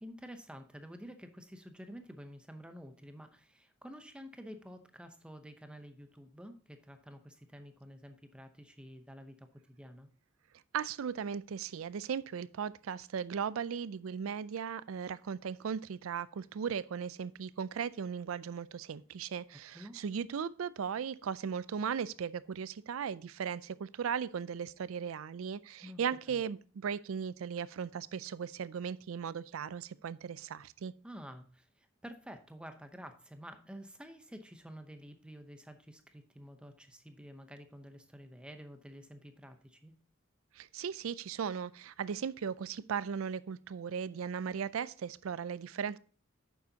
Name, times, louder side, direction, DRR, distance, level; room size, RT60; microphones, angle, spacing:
voice 1, 0.0-10.1 19.7-20.0 25.8-26.0 26.3-26.4 31.0-39.9, equal, 5° right, 0.7 m, -50 dB
voice 2, 10.7-30.9 40.5-46.0, right 7 dB, 80° right, 0.4 m, -37 dB
9.2 x 7.0 x 2.8 m
head